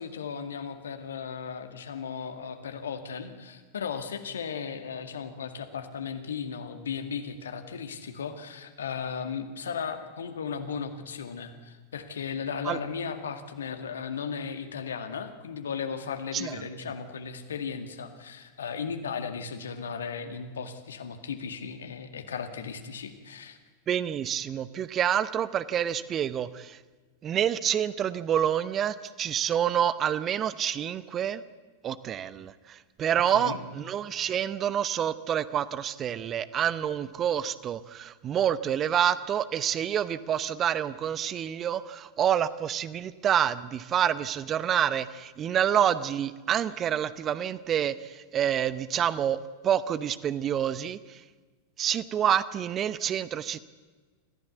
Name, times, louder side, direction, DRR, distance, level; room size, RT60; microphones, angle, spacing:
voice 1, 0.0-23.6 33.3-33.6, left 6 dB, 65° left, 8 dB, 2.1 m, -36 dB
voice 2, 23.9-26.8 27.2-31.4 31.8-49.4 49.6-51.2 51.8-53.6, right 9 dB, 30° right, 16 dB, 0.8 m, -28 dB
25.0 x 15.0 x 8.2 m, 1.4 s
figure-of-eight pair, 90°, 0 cm